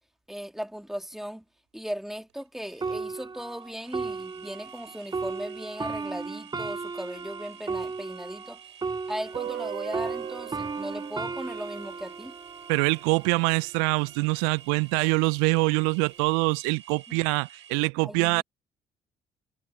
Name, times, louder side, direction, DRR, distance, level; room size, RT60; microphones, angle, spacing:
voice 1, 0.3-1.4 1.7-8.6 9.1-12.3 17.1-17.2 18.0-18.4, equal, ahead, 2.7 m, -37 dB
sound 1, 2.3-17.8, right 9 dB, 90° right, 5.0 m, -51 dB
sound 2, 2.8-9.7 9.9-13.5 14.2-14.4, right 4 dB, 30° right, 4.4 m, -35 dB
Guitar, 9.3-14.2, right 10 dB, 55° right, 3.5 m, -40 dB
voice 2, 12.7-18.4, right 35 dB, 70° right, 0.4 m, -24 dB
hypercardioid pair, 50°, 14 cm